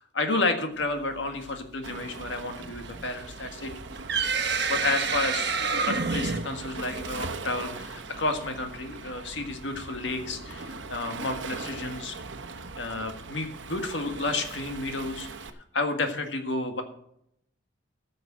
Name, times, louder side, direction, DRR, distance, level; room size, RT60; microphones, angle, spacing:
voice 1, 0.1-3.7 4.7-5.6 5.9-12.2 12.8-15.3 15.7-16.8, left 2 dB, 80° left, 6 dB, 1.7 m, -31 dB
Waves surf, 1.8-15.5, right 3 dB, 85° right, 1.1 m, -41 dB
sound 1, 3.6-7.3, right 5 dB, 65° right, 1.2 m, -28 dB
14.0 x 6.6 x 6.2 m, 0.72 s
head